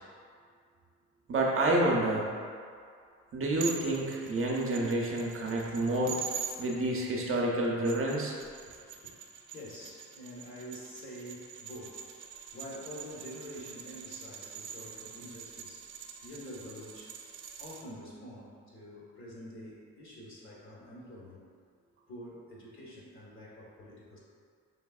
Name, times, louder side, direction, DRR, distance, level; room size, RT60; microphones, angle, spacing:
voice 1, 1.3-2.3 3.3-6.2 6.6-8.3, right 1 dB, 45° right, -2 dB, 0.7 m, -29 dB
sound 1, 3.6-6.6 7.6-17.8, right 7 dB, 85° right, 0.5 m, -44 dB
voice 2, 8.7-9.1 9.5-17.2 17.6-21.5 22.1-24.2, equal, 40° left, -6 dB, 1.4 m, -47 dB
5.4 x 3.2 x 2.4 m, 2.2 s
cardioid pair, 90°, 30 cm